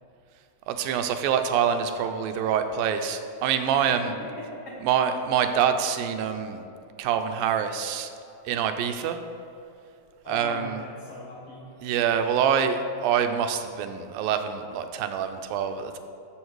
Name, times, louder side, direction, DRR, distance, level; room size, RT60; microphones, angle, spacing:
voice 1, 0.7-4.1 4.8-6.6 7.0-8.1 8.5-9.2 10.3-10.8 11.8-16.0, right 8 dB, 90° right, 7 dB, 2.5 m, -25 dB
voice 2, 3.9-4.9 10.2-11.8, left 1 dB, 55° left, -3 dB, 2.1 m, -40 dB
13.5 x 7.4 x 4.7 m, 2.7 s
omnidirectional pair, 4.0 m